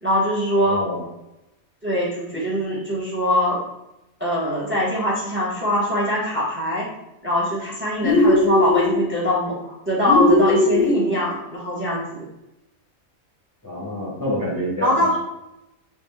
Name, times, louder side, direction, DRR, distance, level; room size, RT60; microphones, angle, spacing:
voice 1, 0.0-0.8 1.8-3.6 4.2-6.9 7.2-12.2 14.8-15.1, equal, 10° right, -6 dB, 1.0 m, -22 dB
voice 2, 0.6-1.0 13.6-15.2, left 1 dB, 15° left, -8 dB, 0.8 m, -27 dB
sound 1, 8.0-8.9 10.1-11.0, left 2 dB, 60° left, 0.9 m, -17 dB
4.2 x 2.6 x 3.5 m, 0.91 s
omnidirectional pair, 1.5 m